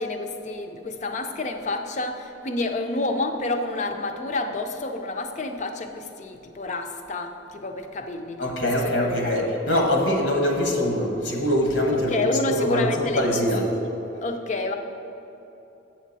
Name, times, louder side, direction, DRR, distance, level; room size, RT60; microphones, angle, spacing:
voice 1, 0.0-9.5 11.9-13.3 14.2-14.7, left 2 dB, 35° left, 5 dB, 0.5 m, -29 dB
voice 2, 8.4-13.7, left 1 dB, 80° left, 1 dB, 1.1 m, -23 dB
8.0 x 6.3 x 4.1 m, 3.0 s
head